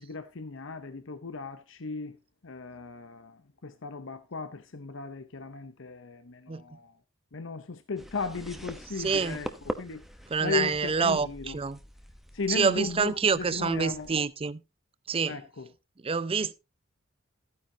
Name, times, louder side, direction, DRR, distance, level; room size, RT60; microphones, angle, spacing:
voice 1, 0.0-2.2 2.4-6.9 7.3-9.5 9.8-10.0 10.4-11.6 12.3-14.1 15.3-15.7, left 4 dB, 70° left, 0.8 m, -36 dB
sound 1, 8.0-14.2, equal, ahead, 1.0 m, -43 dB
voice 2, 9.0-9.4 10.3-11.8 12.5-14.6 15.1-15.4 16.0-16.5, right 5 dB, 30° right, 0.5 m, -27 dB
14.0 x 9.6 x 2.8 m
head